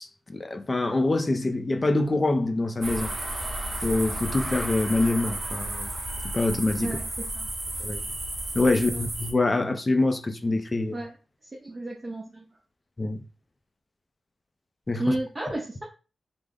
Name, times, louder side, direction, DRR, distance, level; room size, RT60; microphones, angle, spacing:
voice 1, 0.0-3.1 3.8-5.9 6.2-7.0 7.8-8.0 8.5-11.0 13.0-13.2 14.9-15.2, left 2 dB, 25° left, 0.4 m, -25 dB
sound 1, 2.8-9.3, right 1 dB, 50° right, 1.0 m, -33 dB
voice 2, 6.8-7.5 8.9-9.0 10.9-11.1 11.6-12.5 15.0-15.8, right 1 dB, 25° right, 0.5 m, -32 dB
3.3 x 2.0 x 3.5 m
wide cardioid pair, 145°, 0 cm